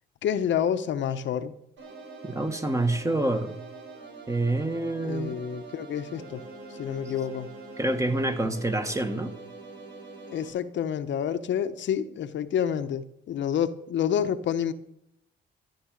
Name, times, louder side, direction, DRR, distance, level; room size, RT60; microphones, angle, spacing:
voice 1, 0.2-1.5 5.0-6.4 6.7-7.5 8.4-8.5 10.3-14.7, left 9 dB, 70° left, 1.0 m, -28 dB
sound 1, 1.8-10.5, right 3 dB, 70° right, 7.1 m, -44 dB
voice 2, 2.3-3.6 4.3-5.4 7.8-9.3, right 2 dB, 15° right, 1.7 m, -27 dB
14.5 x 9.8 x 6.5 m
cardioid pair, 90°, 20 cm